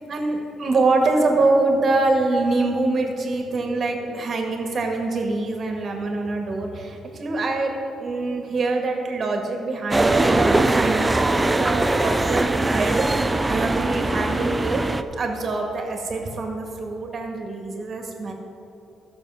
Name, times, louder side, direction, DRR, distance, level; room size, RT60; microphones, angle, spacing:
voice 1, 0.1-18.3, right 3 dB, 50° right, 2 dB, 1.8 m, -24 dB
sound 1, 9.9-15.0, right 2 dB, 15° right, 0.5 m, -21 dB
13.5 x 6.8 x 5.7 m, 2.9 s
cardioid pair, 90°, 0 cm